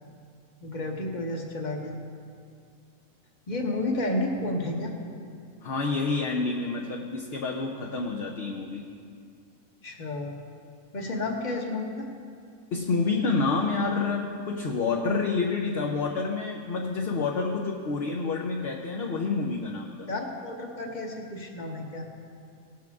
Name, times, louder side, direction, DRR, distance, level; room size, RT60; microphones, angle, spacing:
voice 1, 0.6-2.0 3.5-4.9 9.8-10.4 10.9-12.1 20.0-22.1, left 2 dB, 35° left, 1 dB, 1.2 m, -31 dB
voice 2, 5.6-8.9 12.7-20.1, left 4 dB, 50° left, 0 dB, 0.8 m, -28 dB
17.5 x 7.6 x 3.6 m, 2.3 s
omnidirectional pair, 1.5 m